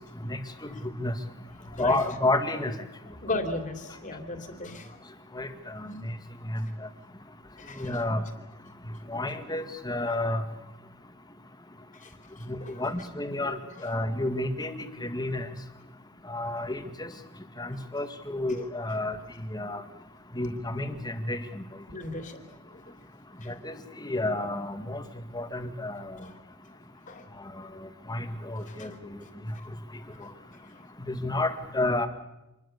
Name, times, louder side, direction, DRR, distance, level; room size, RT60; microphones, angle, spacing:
voice 1, 0.3-0.7 1.0-1.1 1.8-2.7 5.4-5.5 5.7-5.9 6.5-6.6 7.8-8.2 9.1-10.4 12.5-15.5 16.3-17.1 17.6-19.2 19.5-19.8 20.3-21.6 23.5-25.0 25.3-26.2 28.1-28.9 31.1-32.1, left 2 dB, 20° left, 8 dB, 2.0 m, -30 dB
voice 2, 1.6-2.0 3.1-5.0 7.6-8.0 11.9-12.8 17.7-17.9 21.9-22.4 22.7-22.9 23.4-23.5 26.2-26.3 27.1-27.3 28.6-28.9 29.5-29.7 30.1-30.3 30.7-30.8, left 2 dB, 40° left, 7 dB, 3.1 m, -37 dB
26.5 x 21.5 x 6.8 m, 0.93 s
head